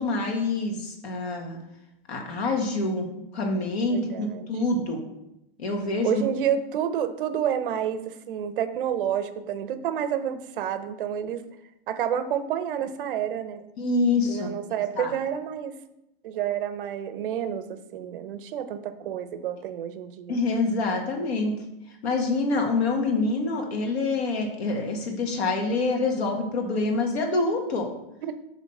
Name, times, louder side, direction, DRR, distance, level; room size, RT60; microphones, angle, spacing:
voice 1, 0.0-1.6 2.1-3.1 3.3-5.0 5.6-6.2 13.8-14.5 15.0-15.2 20.3-21.5 22.0-27.9, left 3 dB, 85° left, 2 dB, 1.7 m, -26 dB
voice 2, 3.9-4.5 6.0-11.4 11.9-13.6 14.3-15.7 16.2-20.4 28.2-28.3, right 9 dB, 60° right, 10 dB, 0.6 m, -29 dB
7.4 x 3.2 x 5.3 m, 0.85 s
supercardioid pair, 175°, 31 cm